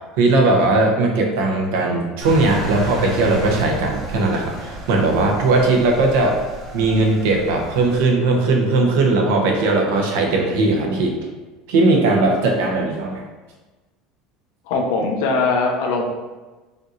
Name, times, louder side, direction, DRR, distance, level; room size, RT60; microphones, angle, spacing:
voice 1, 0.2-6.4 6.7-11.1 11.7-13.2, right 2 dB, 85° right, 2 dB, 0.8 m, -18 dB
Engine, 2.2-8.0, right 1 dB, 45° right, 1.3 m, -31 dB
voice 2, 14.7-16.1, left 3 dB, 80° left, 1 dB, 0.8 m, -20 dB
5.1 x 3.0 x 2.6 m, 1.2 s
supercardioid pair, 130°, 0 cm